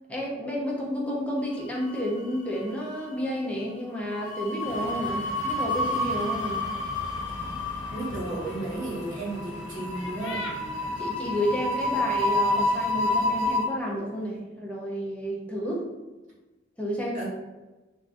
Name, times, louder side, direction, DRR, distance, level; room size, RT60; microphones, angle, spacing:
voice 1, 0.1-6.6 10.9-15.8 16.8-17.2, equal, 5° left, -4 dB, 0.5 m, -31 dB
sound 1, 1.6-2.4 2.6-2.9 4.1-13.6, left 1 dB, 30° left, 1.0 m, -29 dB
sound 2, 4.6-13.5, left 1 dB, 70° left, 0.5 m, -41 dB
voice 2, 7.9-10.5 17.1-17.3, right 2 dB, 45° right, -6 dB, 1.3 m, -33 dB
3.5 x 2.4 x 2.5 m, 1.1 s
head